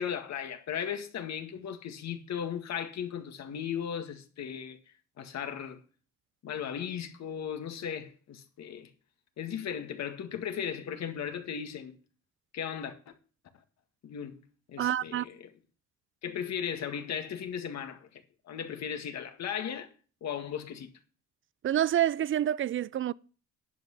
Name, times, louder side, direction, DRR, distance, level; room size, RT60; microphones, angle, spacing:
voice 1, 0.0-4.8 5.2-5.8 6.4-8.9 9.4-11.9 12.5-13.1 14.0-14.4 14.7-15.5 16.2-19.9 20.2-20.9, left 8 dB, 65° left, 1.9 m, -36 dB
voice 2, 14.8-15.3 21.6-23.1, right 11 dB, 45° right, 0.5 m, -27 dB
10.5 x 5.8 x 8.1 m
cardioid pair, 90°, 29 cm